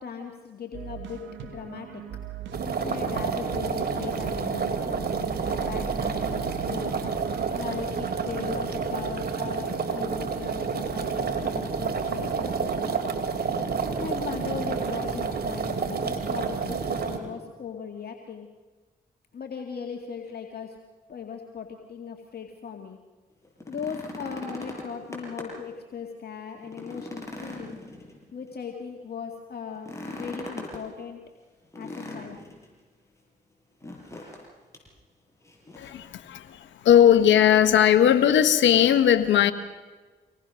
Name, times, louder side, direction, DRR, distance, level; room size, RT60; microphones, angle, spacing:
voice 1, 0.0-2.0 2.7-7.0 7.6-13.0 14.0-18.5 19.3-20.8 21.1-23.0 23.7-27.8 28.3-31.2 31.8-32.4, left 6 dB, 55° left, 2 dB, 2.2 m, -38 dB
sound 1, 0.7-7.5, right 9 dB, 80° right, 1.6 m, -40 dB
sound 2, 2.5-17.2, right 5 dB, 55° right, 3.0 m, -29 dB
sound 3, 23.4-25.7 26.1-26.2 26.6-28.5 29.7-30.8 31.7-32.6 33.8-34.5 34.7-34.9 35.4-36.0 37.2-37.3, left 1 dB, 15° left, 7.9 m, -40 dB
voice 2, 35.8-39.5, left 10 dB, 80° left, 11 dB, 1.3 m, -19 dB
25.5 x 19.0 x 6.4 m, 1.3 s
supercardioid pair, 45°, 19 cm